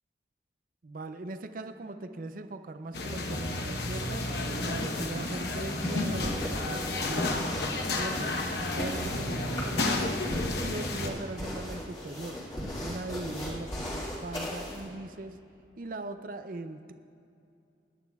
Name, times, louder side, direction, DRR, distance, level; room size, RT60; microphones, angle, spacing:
voice 1, 0.8-4.2 4.6-8.4 8.7-10.2 10.6-12.4 12.8-15.4 15.8-16.9, right 2 dB, 50° right, 8 dB, 0.5 m, -40 dB
sound 1, 2.9-11.1, left 2 dB, 65° left, 1.0 m, -31 dB
sound 2, 5.8-14.9, equal, 30° left, 2.5 m, -38 dB
21.5 x 11.0 x 2.4 m, 2.6 s
head